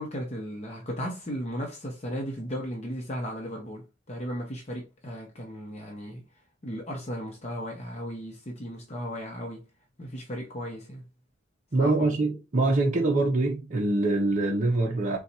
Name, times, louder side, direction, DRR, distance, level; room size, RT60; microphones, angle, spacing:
voice 1, 0.0-6.2 6.6-9.7 10.0-11.0 11.8-12.2, equal, 30° left, 0.8 m, -36 dB
voice 2, 11.7-15.2, right 2 dB, 35° right, 0.7 m, -24 dB
4.0 x 2.4 x 4.1 m
head